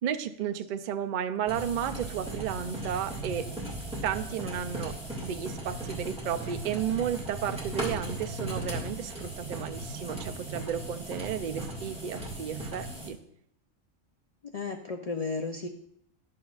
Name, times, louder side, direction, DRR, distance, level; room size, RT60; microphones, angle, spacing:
voice 1, 0.0-3.5 4.0-5.0 5.2-13.2, right 9 dB, 75° right, 8 dB, 0.4 m, -33 dB
sound 1, 1.5-13.1, right 1 dB, 5° right, 1.7 m, -37 dB
voice 2, 14.4-15.7, left 4 dB, 60° left, 4 dB, 0.4 m, -34 dB
11.0 x 6.9 x 2.4 m, 0.73 s
omnidirectional pair, 1.3 m